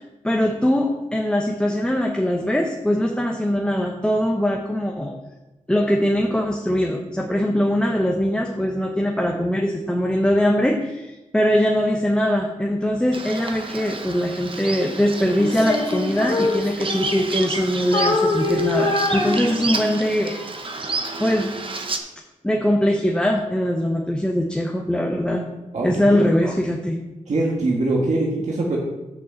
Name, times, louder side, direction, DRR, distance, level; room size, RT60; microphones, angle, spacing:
voice 1, 0.0-5.1 5.7-20.4 21.2-21.5 22.4-25.4 25.8-27.0, equal, 5° left, 1 dB, 0.8 m, -21 dB
Bird vocalization bird call bird song, 13.1-22.0, right 3 dB, 40° right, 1.0 m, -31 dB
Female singing, 15.4-17.6 17.9-20.0, left 3 dB, 40° left, 2.0 m, -24 dB
voice 2, 25.7-26.2 27.3-28.8, right 2 dB, 60° right, -3 dB, 1.7 m, -23 dB
6.8 x 6.2 x 6.9 m, 1.0 s
wide cardioid pair, 115°, 14 cm